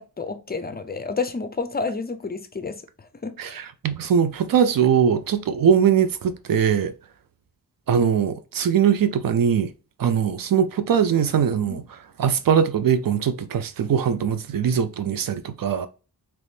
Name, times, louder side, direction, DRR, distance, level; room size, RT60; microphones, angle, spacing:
voice 1, 0.0-3.6 11.7-11.8, left 4 dB, 25° left, 0.4 m, -30 dB
voice 2, 3.4-6.9 7.9-9.7 10.0-11.8 12.2-15.9, right 8 dB, 60° right, 0.5 m, -21 dB
3.4 x 3.0 x 2.7 m
wide cardioid pair, 100°, 39 cm